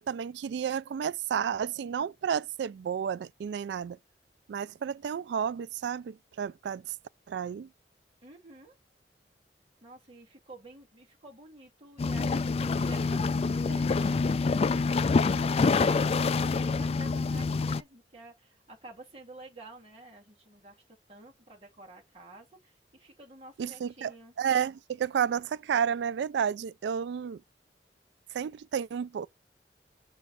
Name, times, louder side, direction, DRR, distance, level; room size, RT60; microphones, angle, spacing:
voice 1, 0.0-4.0 4.5-6.8 7.3-7.7 23.6-24.1 24.4-27.4 28.3-29.3, right 8 dB, 75° right, 0.3 m, -31 dB
voice 2, 8.2-8.8 9.8-24.3, right 2 dB, 35° right, 2.3 m, -51 dB
sound 1, 12.0-17.8, left 4 dB, 35° left, 0.3 m, -26 dB
6.1 x 4.0 x 5.5 m
head